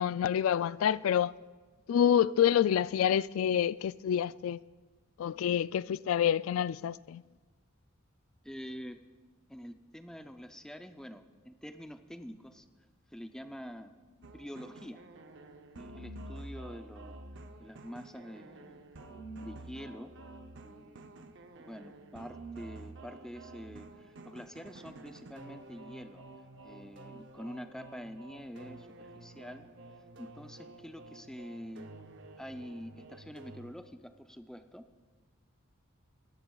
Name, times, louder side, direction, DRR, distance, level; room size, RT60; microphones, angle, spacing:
voice 1, 0.0-1.3 1.9-4.6 5.2-7.2, left 9 dB, 80° left, 0.3 m, -27 dB
voice 2, 8.4-9.0 9.5-12.7 13.1-13.9 14.3-15.1 15.7-17.2 17.6-18.9 19.4-20.1 20.6-26.2 26.6-29.7 30.2-31.9 32.4-34.9, equal, 5° left, 0.5 m, -46 dB
sound 1, 14.2-33.7, right 2 dB, 60° right, 0.7 m, -49 dB
20.5 x 14.5 x 2.4 m
head